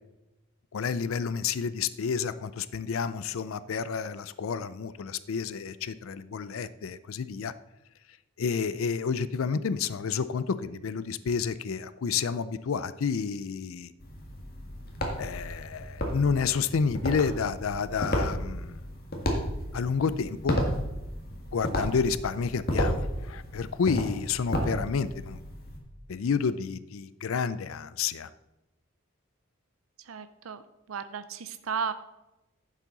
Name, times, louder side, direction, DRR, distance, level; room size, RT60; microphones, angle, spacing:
voice 1, 0.7-7.5 8.4-13.9 15.2-18.8 19.7-20.6 21.5-25.4 26.1-28.3, left 6 dB, 80° left, 0.4 m, -30 dB
sound 1, 14.0-25.8, equal, 45° left, 1.9 m, -33 dB
voice 2, 30.0-30.6 30.9-31.9, right 6 dB, 85° right, 0.6 m, -34 dB
10.5 x 7.5 x 4.0 m
head